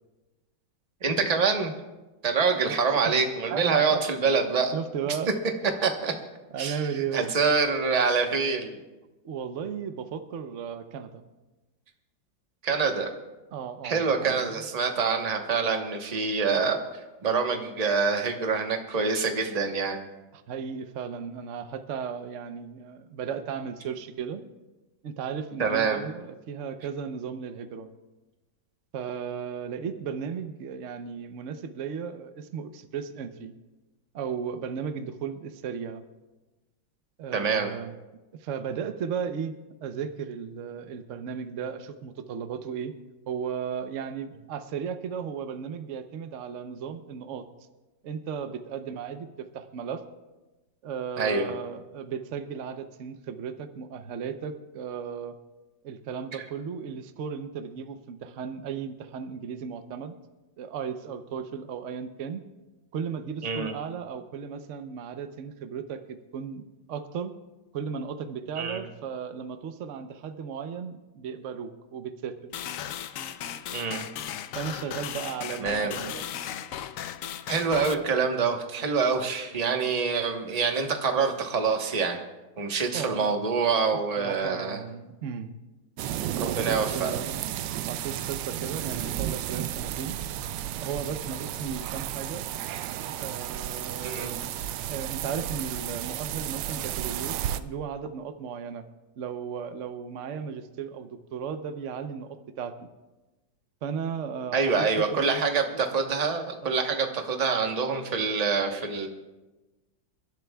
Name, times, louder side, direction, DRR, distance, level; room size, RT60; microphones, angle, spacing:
voice 1, 1.0-1.7 2.2-4.7 5.1-5.2 5.8-6.1 6.6-6.8 7.1-8.8 12.6-13.1 13.8-16.8 17.2-20.0 25.6-26.0 37.3-37.7 51.2-51.5 63.4-63.7 68.6-68.8 73.7-74.1 75.6-76.0 77.5-82.2 82.6-84.8 86.4-87.2 94.0-94.4 104.5-109.1, right 5 dB, 30° right, 4 dB, 0.9 m, -26 dB
voice 2, 3.5-4.0 4.7-5.3 6.5-7.3 9.2-11.3 13.5-14.6 20.3-24.4 25.0-27.9 28.9-33.5 34.1-36.0 37.2-37.9 38.4-39.5 39.8-42.9 43.3-47.5 48.0-50.0 50.8-55.3 55.8-60.1 60.6-62.4 62.9-66.6 66.9-67.3 67.7-72.4 74.6-76.3 82.9-83.4 84.2-85.5 86.4-87.4 87.9-90.2 90.8-92.5 93.2-94.5 94.9-98.8 99.2-102.9 103.8-105.4 106.6-106.7, right 7 dB, 60° right, 9 dB, 0.8 m, -35 dB
sound 1, 72.5-77.9, left 9 dB, 85° left, 0.7 m, -36 dB
sound 2, 86.0-97.6, right 11 dB, 75° right, 1.2 m, -33 dB
28.0 x 11.5 x 2.3 m, 1.1 s
omnidirectional pair, 2.1 m